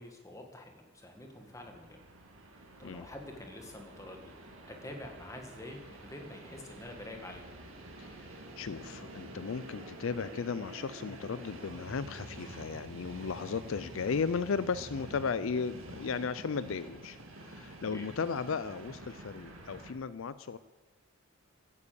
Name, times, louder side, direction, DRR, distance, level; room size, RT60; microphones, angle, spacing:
voice 1, 0.0-2.0 2.8-4.3 4.7-7.5 17.9-18.1, left 1 dB, 15° left, 3 dB, 1.8 m, -47 dB
Train, 1.0-19.9, right 1 dB, 70° right, 2.3 m, -48 dB
voice 2, 8.0-17.2 17.4-20.6, left 5 dB, 65° left, 15 dB, 0.4 m, -35 dB
15.5 x 9.8 x 6.9 m, 1.2 s
head